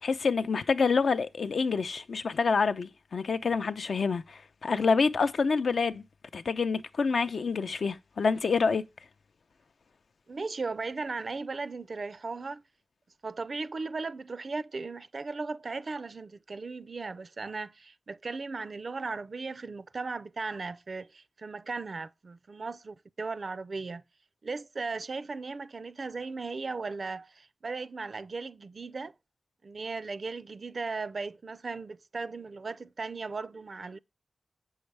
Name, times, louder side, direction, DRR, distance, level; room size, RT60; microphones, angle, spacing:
voice 1, 0.0-6.0 6.3-8.8, left 5 dB, 80° left, 0.5 m, -27 dB
voice 2, 4.7-5.0 10.3-12.6 13.2-24.0 24.4-29.1 29.6-34.0, right 4 dB, 60° right, 0.4 m, -37 dB
7.9 x 6.4 x 3.3 m
wide cardioid pair, 85°, 0 cm